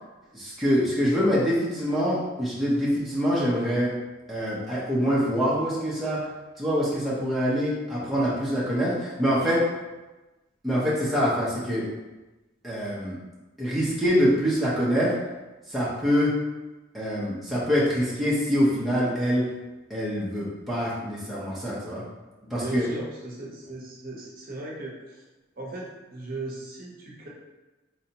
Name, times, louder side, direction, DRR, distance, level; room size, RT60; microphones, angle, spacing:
voice 1, 0.3-3.9 4.3-6.2 6.6-9.7 10.6-11.9 12.6-13.2 13.6-15.1 15.7-16.3 16.9-19.4 19.9-22.0 22.5-22.9, equal, ahead, -9 dB, 0.6 m, -25 dB
voice 2, 22.4-25.2 25.6-27.3, right 2 dB, 45° right, -3 dB, 0.7 m, -37 dB
4.3 x 2.7 x 2.8 m, 1.1 s
head